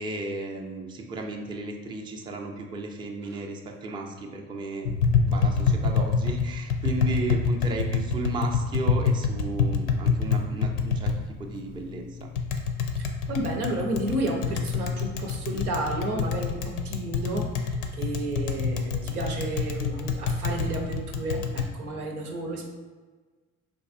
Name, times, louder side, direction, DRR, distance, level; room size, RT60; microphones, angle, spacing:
voice 1, 0.0-5.0 5.2-12.3, right 2 dB, 10° right, 1 dB, 0.4 m, -34 dB
Tap, 4.8-21.7, left 5 dB, 65° left, 0.5 m, -27 dB
voice 2, 13.0-22.7, right 1 dB, 85° right, 1 dB, 0.6 m, -32 dB
4.0 x 2.6 x 2.5 m, 1.4 s
figure-of-eight pair, 50°, 44 cm